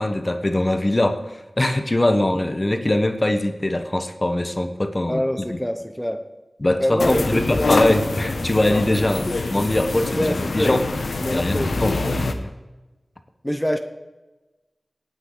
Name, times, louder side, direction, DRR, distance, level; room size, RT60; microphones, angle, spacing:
voice 1, 0.0-5.6 6.6-10.9 11.3-12.3, left 1 dB, 35° left, 8 dB, 1.1 m, -22 dB
voice 2, 5.1-6.3 6.8-7.8 9.2-9.4 10.2-10.7 11.2-12.2 13.4-13.8, equal, 10° left, 6 dB, 1.0 m, -25 dB
sound 1, 7.0-12.3, left 3 dB, 90° left, 0.9 m, -25 dB
18.0 x 9.1 x 3.9 m, 1.1 s
wide cardioid pair, 50°, 0 cm